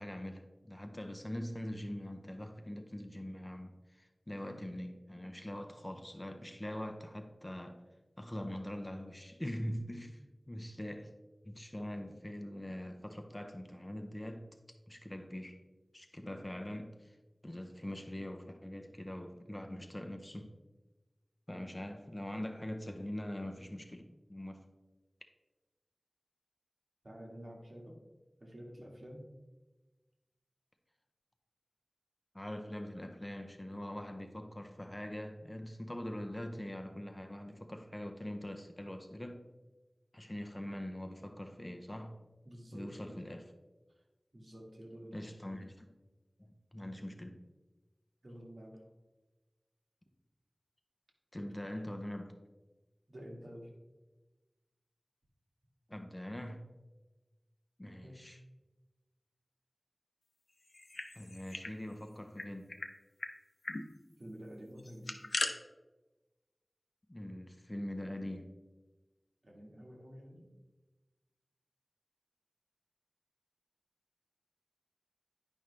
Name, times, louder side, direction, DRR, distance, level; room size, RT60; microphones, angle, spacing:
voice 1, 0.0-7.8 8.2-10.2 10.5-11.1 11.4-14.5 14.9-15.6 15.9-17.2 17.4-20.6 21.5-24.7 32.3-39.5 40.1-42.2 42.7-43.5 45.1-45.9 46.4-47.4 51.3-52.4 55.9-56.7 57.8-58.4 61.1-62.8 67.1-68.6, left 1 dB, 20° left, 0.6 m, -43 dB
voice 2, 27.0-28.0 28.4-29.3 42.4-43.2 43.9-44.0 44.3-45.3 48.2-48.8 53.1-53.7 58.0-58.2 64.2-65.3 69.4-70.5, equal, 60° right, 1.7 m, -50 dB
sound 1, 60.7-61.7 62.0-62.1 62.4-62.9 63.2-63.3 63.6-63.8 64.8-65.5, left 2 dB, 60° left, 0.7 m, -38 dB
10.0 x 5.4 x 3.3 m
wide cardioid pair, 60°, 0 cm